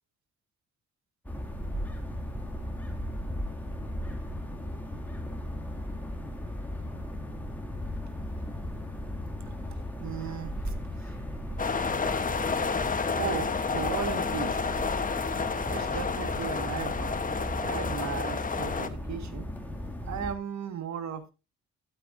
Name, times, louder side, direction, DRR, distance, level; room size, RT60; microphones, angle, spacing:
sound 1, 1.2-20.3, left 1 dB, 5° left, 2.2 m, -36 dB
voice 1, 9.6-11.2 13.0-14.7 15.6-19.5 20.0-21.3, right 8 dB, 65° right, 9 dB, 1.7 m, -37 dB
sound 2, 11.6-18.9, left 5 dB, 25° left, 1.0 m, -30 dB
12.0 x 8.9 x 2.6 m, 0.27 s
cardioid pair, 90°, 30 cm